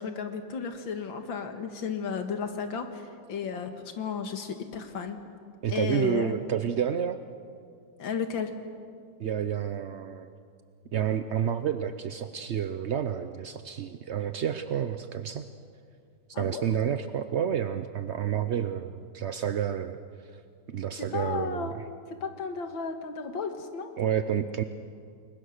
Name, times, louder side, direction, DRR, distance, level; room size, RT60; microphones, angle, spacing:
voice 1, 0.0-5.2 5.7-6.3 8.0-8.5 16.3-16.6 21.0-21.7 22.1-23.9, left 6 dB, 85° left, 6 dB, 2.4 m, -33 dB
voice 2, 5.6-7.2 9.2-10.3 10.9-15.5 16.4-20.0 20.7-21.7 24.0-24.6, right 9 dB, 75° right, 10 dB, 0.6 m, -29 dB
29.5 x 21.5 x 6.6 m, 2.4 s
omnidirectional pair, 2.1 m